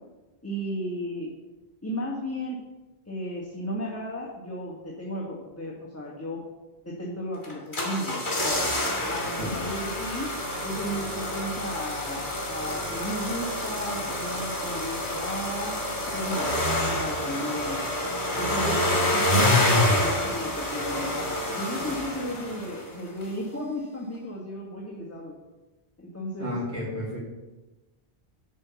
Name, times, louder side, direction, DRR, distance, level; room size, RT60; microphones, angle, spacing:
voice 1, 0.4-1.3 1.8-2.6 3.1-6.4 6.8-8.6 9.1-10.3 10.6-15.7 16.1-17.8 18.4-25.4 26.0-26.5, equal, 15° left, -4 dB, 1.4 m, -34 dB
sound 1, 7.4-22.9 23.2-23.3, left 1 dB, 45° left, 2.4 m, -27 dB
voice 2, 26.4-27.2, left 1 dB, 75° right, -3 dB, 2.4 m, -32 dB
10.0 x 4.6 x 6.9 m, 1.1 s
omnidirectional pair, 1.1 m